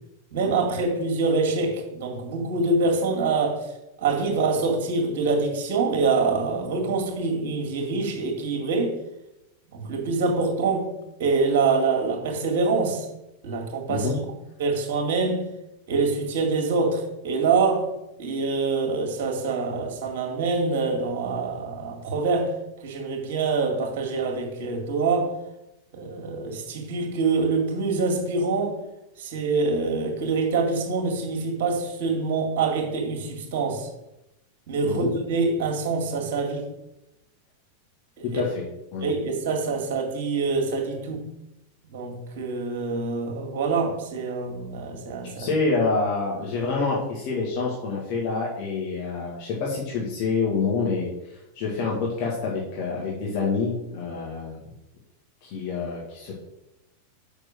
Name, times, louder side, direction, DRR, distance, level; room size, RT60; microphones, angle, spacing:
voice 1, 0.3-3.7 4.0-9.0 9.7-10.9 11.2-13.1 13.4-14.1 14.6-15.5 15.9-17.9 18.2-22.5 22.8-25.3 25.9-28.8 29.2-33.9 34.7-36.7 38.2-38.4 39.0-41.3 41.8-45.5, right 4 dB, 50° right, 2.1 m, -25 dB
voice 2, 38.2-38.6 38.9-39.1 45.3-54.6 55.4-56.3, left 4 dB, 45° left, 1.9 m, -27 dB
6.5 x 5.9 x 6.3 m
figure-of-eight pair, 90°, 0 cm